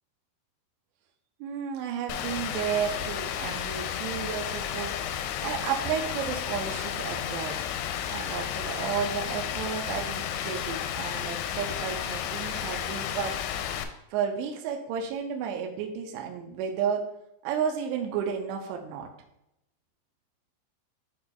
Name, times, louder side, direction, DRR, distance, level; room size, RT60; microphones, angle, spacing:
voice 1, 1.4-4.9 5.4-7.6 8.1-13.4 14.1-17.0 17.4-19.1, right 7 dB, 85° right, 2 dB, 2.7 m, -32 dB
Rain, 2.1-13.8, left 9 dB, 90° left, 2.8 m, -32 dB
10.0 x 4.3 x 2.3 m, 0.82 s
omnidirectional pair, 5.0 m